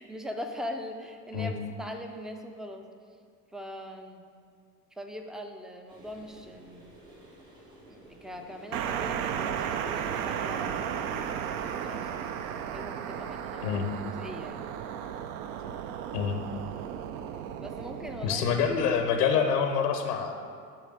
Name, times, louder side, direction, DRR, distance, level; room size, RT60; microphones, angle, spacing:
voice 1, 0.0-2.9 3.5-4.2 4.9-6.9 7.9-11.2 11.6-12.1 12.7-13.8 14.0-14.7 17.6-18.4, equal, ahead, 5 dB, 0.4 m, -41 dB
sound 1, 5.9-12.6, right 1 dB, 90° right, 1.7 m, -50 dB
sound 2, 8.7-19.2, right 8 dB, 60° right, 0.6 m, -35 dB
voice 2, 18.2-20.3, left 6 dB, 75° left, 5 dB, 0.9 m, -26 dB
8.5 x 3.4 x 6.3 m, 2.1 s
hypercardioid pair, 70°, 47 cm